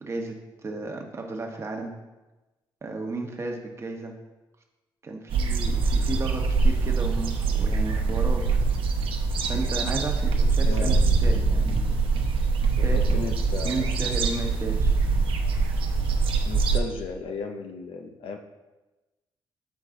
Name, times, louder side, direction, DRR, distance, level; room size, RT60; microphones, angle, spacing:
voice 1, 0.0-1.9 2.8-4.1 5.0-8.4 8.8-8.9 9.5-11.9 12.8-13.3 13.6-15.0, right 3 dB, 30° right, 1 dB, 1.0 m, -34 dB
sound 1, 5.3-16.8, right 4 dB, 75° right, 0.8 m, -23 dB
voice 2, 10.6-11.0 12.8-13.9 16.4-18.4, left 4 dB, 80° left, 4 dB, 0.6 m, -35 dB
8.1 x 4.7 x 3.7 m, 1.1 s
cardioid pair, 130°, 9 cm